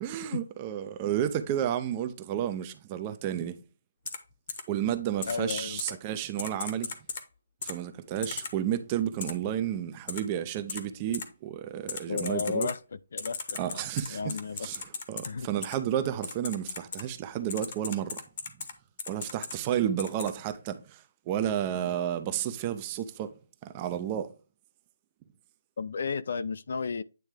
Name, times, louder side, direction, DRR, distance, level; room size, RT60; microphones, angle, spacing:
voice 1, 0.0-3.6 4.7-6.9 7.6-12.7 13.5-18.2 19.1-23.3 23.6-24.3, right 10 dB, 20° right, 0.5 m, -31 dB
Typing, 4.1-4.2 4.5-4.6 5.2-5.9 6.4-7.2 7.6-7.7 8.2-8.5 9.2-9.3 10.1-10.2 10.7-10.8 11.1-11.2 11.9-12.7 13.2-15.3 15.6-15.8 16.2-17.0 17.5-18.7 19.0-19.5 20.0-20.3, left 5 dB, 35° left, 1.0 m, -36 dB
voice 2, 5.3-6.0 12.1-12.8 13.1-13.4 13.7-13.8 14.1-14.7 15.3-15.5 25.8-27.0, left 5 dB, 55° left, 0.4 m, -33 dB
9.1 x 3.5 x 3.3 m
hypercardioid pair, 170°, 0 cm